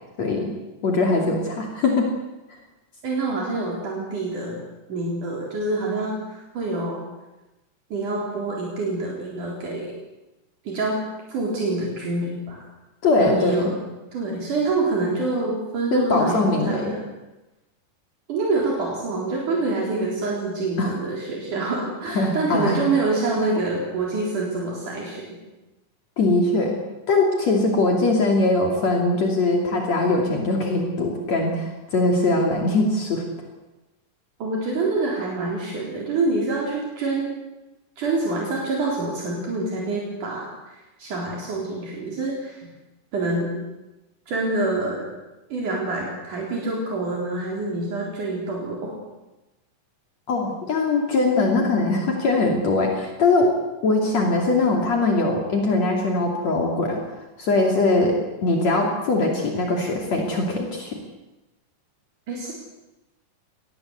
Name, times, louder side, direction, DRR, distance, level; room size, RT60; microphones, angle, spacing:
voice 1, 0.2-0.5 0.8-2.1 13.0-13.7 15.9-16.9 20.8-20.9 22.2-22.8 26.2-26.8 27.1-33.2 50.3-53.6 53.8-57.0 57.4-61.0, left 2 dB, 55° left, 1 dB, 4.0 m, -21 dB
voice 2, 3.0-4.6 4.9-7.0 7.9-9.9 10.7-11.0 11.3-12.6 13.2-13.7 14.1-17.0 18.3-25.3 34.4-37.3 38.0-42.7 43.1-43.5 44.3-45.1 45.5-48.9 62.3-62.5, right 3 dB, 70° right, -2 dB, 5.5 m, -26 dB
25.0 x 20.0 x 8.2 m, 1.0 s
omnidirectional pair, 3.7 m